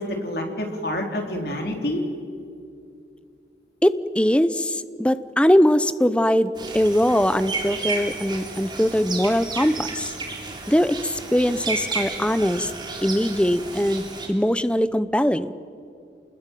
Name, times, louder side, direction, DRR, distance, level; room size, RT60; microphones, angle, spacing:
voice 1, 0.0-2.0, left 1 dB, 60° left, 3 dB, 4.1 m, -28 dB
voice 2, 3.8-10.1 10.7-12.7 13.0-15.5, equal, 5° left, 14 dB, 0.7 m, -21 dB
sound 1, 6.6-14.3, right 3 dB, 25° right, 3.3 m, -32 dB
28.5 x 20.5 x 9.2 m, 2.4 s
head